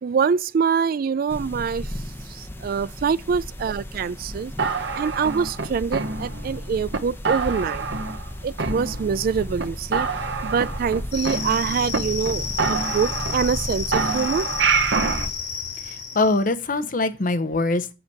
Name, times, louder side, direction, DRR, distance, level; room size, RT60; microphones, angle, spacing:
voice 1, 0.0-4.5 5.0-7.9 8.4-10.1 10.4-14.5, right 6 dB, 55° right, 0.3 m, -25 dB
sound 1, 1.3-15.3, left 1 dB, 15° left, 0.8 m, -35 dB
sound 2, 4.6-6.5 6.9-7.0 7.2-8.3 8.6-9.3 9.6-9.7 9.9-12.0 12.2-12.3 12.6-13.6 13.9-15.3, right 4 dB, 75° right, 0.9 m, -26 dB
sound 3, 11.1-16.4, left 6 dB, 90° left, 4.2 m, -31 dB
voice 2, 15.8-17.9, left 2 dB, 50° left, 0.8 m, -23 dB
8.0 x 6.9 x 4.6 m
head